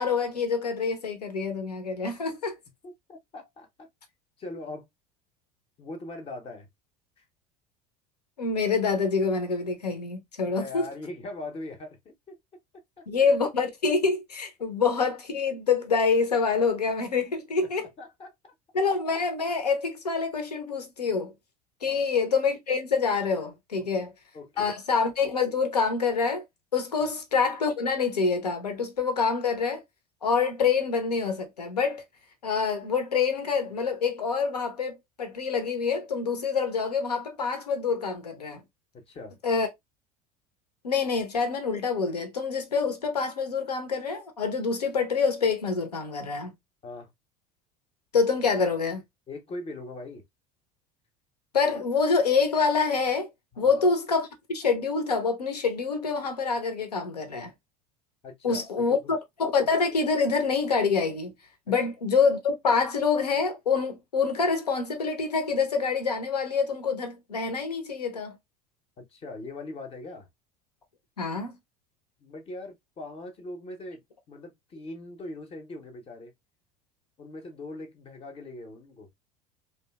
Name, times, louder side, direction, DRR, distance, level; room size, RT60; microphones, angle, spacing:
voice 1, 0.0-2.6 8.4-10.8 13.1-17.9 18.7-21.3 21.8-24.1 24.6-26.4 26.7-29.8 30.2-32.0 32.4-38.6 39.4-39.7 40.8-46.5 48.1-49.0 51.5-53.3 53.6-57.5 58.4-61.3 61.7-68.4 71.2-71.6, left 5 dB, 80° left, 0.7 m, -26 dB
voice 2, 2.8-3.9 4.4-4.9 5.8-6.7 7.2-7.3 10.4-12.4 13.0-13.1 17.6-18.5 21.8-22.0 23.8-23.9 24.3-24.7 27.0-27.1 38.9-39.4 46.8-47.1 49.3-50.2 53.5-53.8 58.2-58.7 59.0-59.1 61.7-61.8 69.0-70.3 72.2-76.3 77.2-79.1, left 2 dB, 30° left, 0.6 m, -41 dB
2.7 x 2.2 x 2.2 m
figure-of-eight pair, 70°, 20 cm